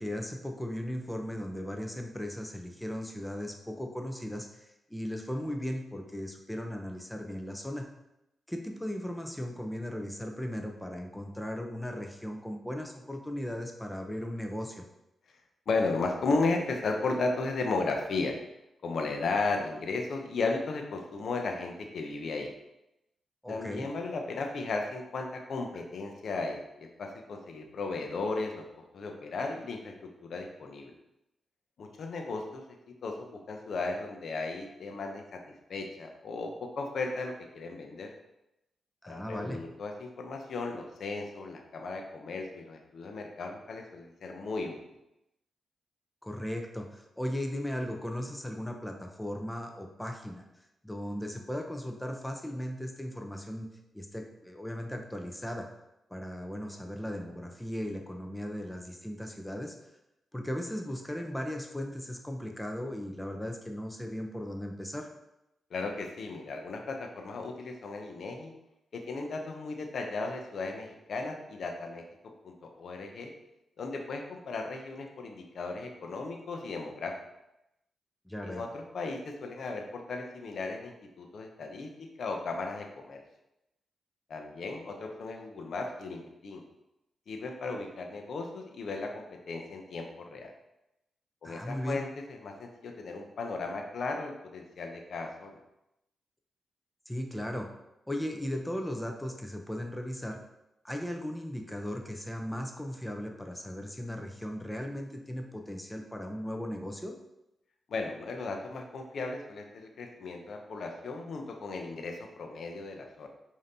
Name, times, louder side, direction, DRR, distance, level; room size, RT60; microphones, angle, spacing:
voice 1, 0.0-7.9 8.5-14.8 23.4-23.9 39.0-39.6 46.2-50.5 50.8-55.7 56.1-59.8 60.3-65.1 78.3-78.6 91.4-92.0 97.1-97.7 98.1-100.4 100.8-107.1, equal, 10° left, 3 dB, 0.6 m, -37 dB
voice 2, 15.7-18.4 18.8-22.5 23.5-28.7 28.9-30.9 31.8-38.1 39.0-44.8 65.7-68.5 68.9-73.3 73.8-77.2 78.4-83.2 84.3-86.6 87.3-90.5 91.4-95.6 107.9-113.3, left 3 dB, 70° left, 4 dB, 0.6 m, -35 dB
5.1 x 2.7 x 2.7 m, 0.89 s
supercardioid pair, 45°, 0 cm